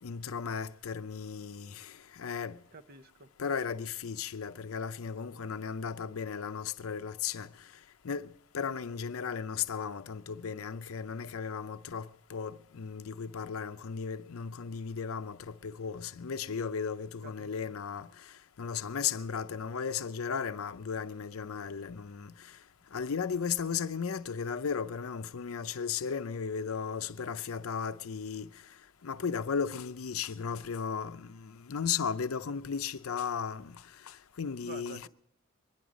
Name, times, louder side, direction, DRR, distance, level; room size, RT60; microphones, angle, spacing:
voice 1, 0.0-2.6 3.4-7.7 8.0-22.6 22.9-28.6 29.0-35.1, left 6 dB, 85° left, 0.6 m, -36 dB
voice 2, 2.7-3.3 5.4-5.5 17.2-17.5 34.6-35.1, right 3 dB, 45° right, 0.7 m, -48 dB
22.5 x 11.0 x 5.1 m
head